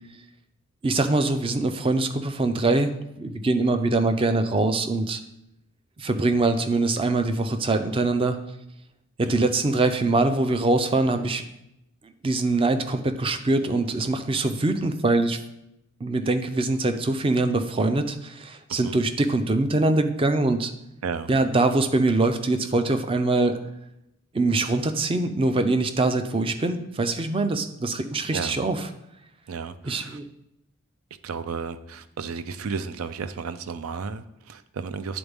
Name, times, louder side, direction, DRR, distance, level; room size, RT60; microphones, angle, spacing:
voice 1, 0.8-5.2 6.0-8.4 9.2-11.4 12.2-15.4 16.0-20.7 21.3-23.6 24.3-28.8 29.8-30.3, right 2 dB, 25° right, 8 dB, 0.4 m, -23 dB
voice 2, 29.5-30.2 31.2-35.2, right 5 dB, 85° right, 12 dB, 0.4 m, -33 dB
10.0 x 3.9 x 3.5 m, 0.84 s
head